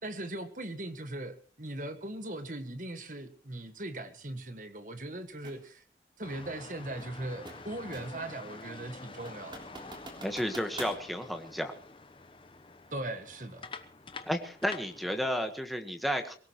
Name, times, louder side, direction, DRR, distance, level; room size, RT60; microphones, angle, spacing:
voice 1, 0.0-5.8 6.2-9.6 12.9-13.7, right 1 dB, 45° right, 9 dB, 1.7 m, -39 dB
sound 1, 5.4-5.7 7.0-8.3 8.7-8.8 9.3-11.0, right 2 dB, 25° right, 3.4 m, -46 dB
sound 2, 6.2-15.3, left 3 dB, 30° left, 1.0 m, -48 dB
voice 2, 10.2-11.7 14.3-16.4, equal, ahead, 5 dB, 1.4 m, -32 dB
23.5 x 17.5 x 3.1 m, 0.43 s
head